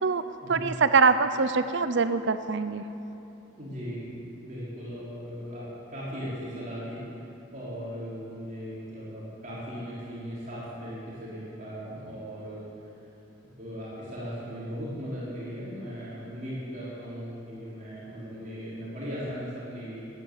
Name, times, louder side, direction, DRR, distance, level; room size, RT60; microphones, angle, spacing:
voice 1, 0.5-2.8, right 4 dB, 65° right, 11 dB, 0.6 m, -23 dB
voice 2, 3.5-7.2 7.5-13.0 13.6-20.0, equal, 40° right, -9 dB, 3.9 m, -38 dB
13.0 x 10.5 x 8.4 m, 2.8 s
head